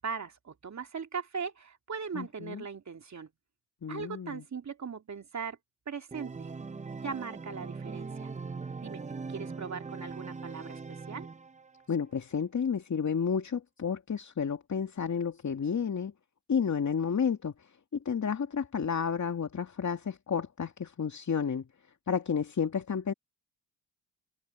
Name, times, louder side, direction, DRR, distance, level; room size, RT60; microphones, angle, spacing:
voice 1, 0.0-3.3 3.9-5.6 5.9-6.5 7.0-8.3 8.8-9.0 9.3-11.3, right 5 dB, 40° right, 2.7 m, -39 dB
voice 2, 2.1-2.6 3.8-4.4 11.9-16.1 16.5-17.5 17.9-21.6 22.1-23.1, left 6 dB, 40° left, 2.4 m, -31 dB
Organ, 6.1-11.8, right 4 dB, 15° right, 0.7 m, -41 dB
supercardioid pair, 65°, 44 cm